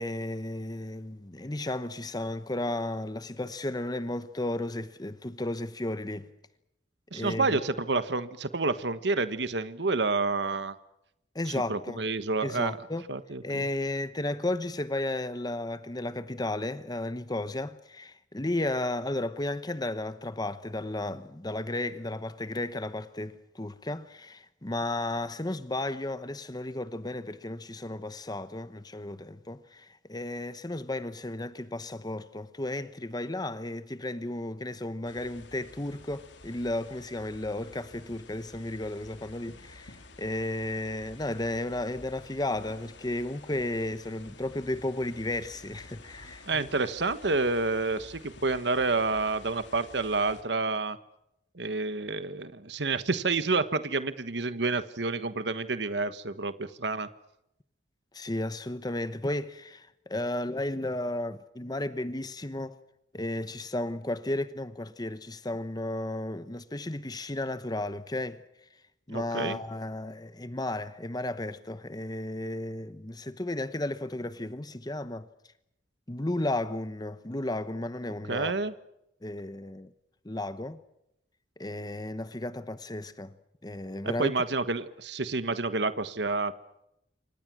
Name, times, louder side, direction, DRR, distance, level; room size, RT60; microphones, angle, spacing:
voice 1, 0.0-6.3 7.1-7.6 11.3-12.0 12.4-13.1 13.4-46.4 58.1-62.7 63.1-68.4 69.1-75.3 76.1-78.5 79.2-79.9 80.2-80.8 81.6-83.3 83.6-84.3, left 1 dB, 20° left, 1.0 m, -34 dB
voice 2, 7.1-10.7 11.5-12.8 13.1-13.6 46.5-51.0 51.5-57.1 69.1-69.6 78.3-78.7 84.0-86.5, right 3 dB, 70° right, 1.3 m, -29 dB
sound 1, 35.0-50.4, left 2 dB, 80° left, 3.2 m, -51 dB
28.0 x 25.5 x 6.2 m
head